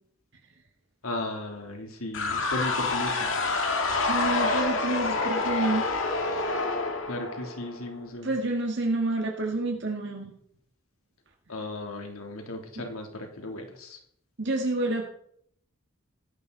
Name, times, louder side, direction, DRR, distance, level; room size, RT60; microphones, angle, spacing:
voice 1, 1.0-3.3 7.1-8.3 11.5-14.0, left 1 dB, 80° left, 3 dB, 3.1 m, -36 dB
sound 1, 2.1-7.9, left 3 dB, 60° left, 2.1 m, -27 dB
voice 2, 4.1-5.8 8.2-10.3 12.8-12.9 14.4-15.1, right 2 dB, 55° right, 1 dB, 1.9 m, -28 dB
16.5 x 14.5 x 4.1 m, 0.68 s
head